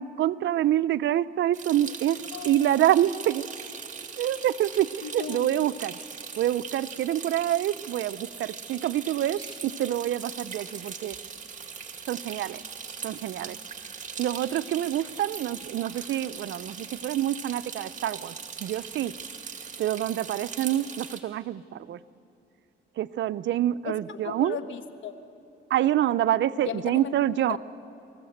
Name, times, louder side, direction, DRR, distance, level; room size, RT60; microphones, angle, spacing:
voice 1, 0.0-2.2 2.4-3.4 4.2-4.9 5.1-5.9 6.4-11.1 12.1-12.6 13.0-13.6 14.2-18.3 18.6-19.1 19.8-22.0 23.0-24.6 25.7-27.6, right 12 dB, 70° right, 14 dB, 0.6 m, -26 dB
sound 1, 1.5-21.2, right 6 dB, 40° right, 2.1 m, -40 dB
voice 2, 2.3-2.8 5.0-5.5 23.8-25.1 26.6-27.1 27.5-27.6, left 8 dB, 75° left, 10 dB, 1.1 m, -36 dB
sound 2, 4.1-4.9 6.8-6.9 7.9-8.0 9.1-9.8 10.2-11.4 11.6-11.8 12.1-13.5 14.9-16.4 18.1-18.8, right 3 dB, 20° right, 2.6 m, -52 dB
26.0 x 15.5 x 7.9 m, 2.9 s
cardioid pair, 90°, 20 cm